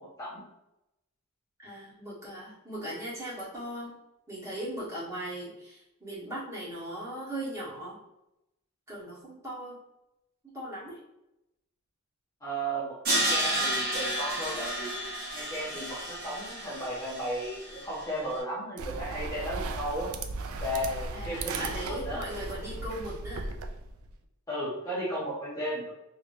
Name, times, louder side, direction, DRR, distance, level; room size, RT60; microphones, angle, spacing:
voice 1, 1.6-3.9 4.3-8.0 8.9-9.8 10.4-11.0 13.5-13.8 21.1-23.5, right 1 dB, 15° right, -9 dB, 1.3 m, -38 dB
voice 2, 12.4-15.0 15.3-20.1 20.6-22.3 24.5-25.9, right 1 dB, 15° left, -9 dB, 0.9 m, -35 dB
Crash cymbal, 13.0-18.1, right 1 dB, 45° right, 1.1 m, -31 dB
sound 1, 18.8-24.1, right 3 dB, 80° right, 0.4 m, -36 dB
3.2 x 3.0 x 2.5 m, 0.89 s
head